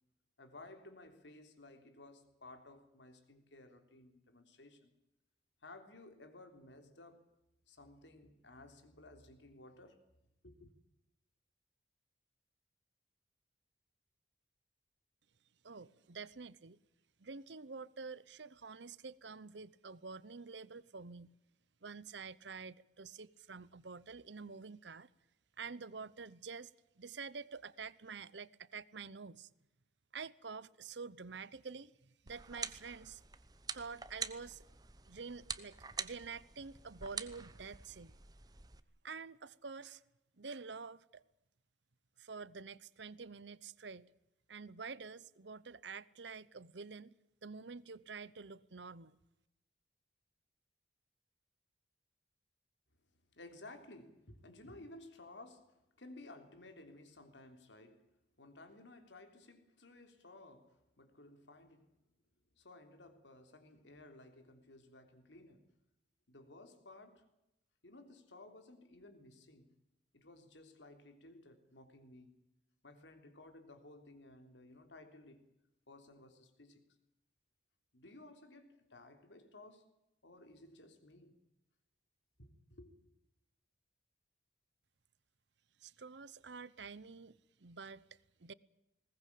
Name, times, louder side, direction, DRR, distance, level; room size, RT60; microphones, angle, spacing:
voice 1, 0.4-4.9 5.6-7.2 7.7-10.0 10.4-10.7 53.3-58.1 58.4-61.9 62.6-65.7 66.3-67.3 67.8-69.7 70.1-72.4 72.8-75.5 75.9-76.8 77.9-79.9 80.2-81.3 82.4-83.1, left 2 dB, 85° left, 3.4 m, -56 dB
voice 2, 15.6-16.8 17.2-21.3 21.8-25.1 25.6-26.7 27.0-29.5 30.1-33.2 33.7-34.6 35.1-38.2 39.0-40.0 40.4-41.2 42.2-44.1 44.5-47.2 47.4-49.2 85.8-88.5, right 5 dB, 75° right, 0.8 m, -48 dB
sound 1, 32.3-38.8, right 6 dB, 20° right, 1.0 m, -46 dB
20.5 x 19.5 x 8.6 m
head